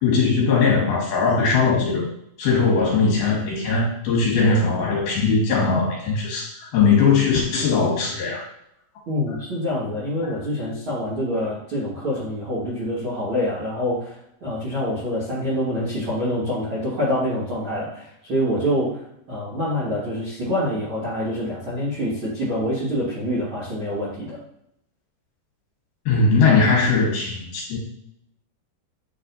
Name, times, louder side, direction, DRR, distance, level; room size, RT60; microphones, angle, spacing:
voice 1, 0.0-2.1 2.4-8.5 26.1-27.8, left 4 dB, 65° left, -2 dB, 3.0 m, -20 dB
voice 2, 9.1-14.1 14.4-19.0 19.3-24.4, equal, 55° right, -10 dB, 1.4 m, -26 dB
9.2 x 4.2 x 2.6 m, 0.74 s
omnidirectional pair, 5.1 m